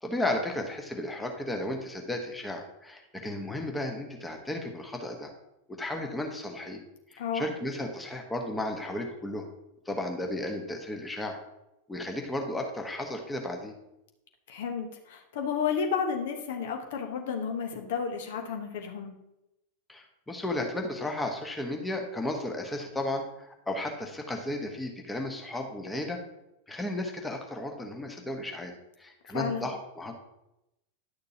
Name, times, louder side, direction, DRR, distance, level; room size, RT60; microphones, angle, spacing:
voice 1, 0.0-5.3 5.7-6.8 7.1-9.4 9.9-11.4 11.9-13.7 19.9-26.2 26.7-28.7 29.0-30.1, left 1 dB, 10° left, 3 dB, 1.1 m, -34 dB
voice 2, 7.2-7.5 14.5-19.1 29.3-29.7, left 6 dB, 55° left, 4 dB, 1.1 m, -32 dB
10.5 x 6.6 x 2.8 m, 0.89 s
figure-of-eight pair, 90°, 0 cm